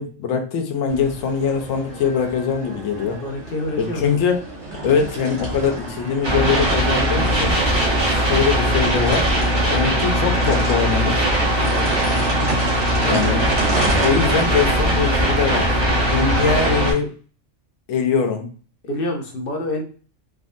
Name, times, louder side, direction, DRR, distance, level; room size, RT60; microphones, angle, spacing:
voice 1, 0.0-3.2 3.8-4.4 4.8-7.7 8.0-9.3 9.7-11.3 13.0-13.5 14.0-15.8 16.1-17.1 17.9-18.5, left 6 dB, 80° left, 5 dB, 1.0 m, -22 dB
sound 1, 0.9-16.6, right 1 dB, 60° right, 1.3 m, -31 dB
voice 2, 3.2-4.1 11.6-12.0 18.8-19.8, left 1 dB, 55° left, 3 dB, 0.7 m, -27 dB
sound 2, 6.2-16.9, right 1 dB, 25° right, 0.7 m, -20 dB
3.6 x 2.0 x 2.5 m, 0.39 s
omnidirectional pair, 1.3 m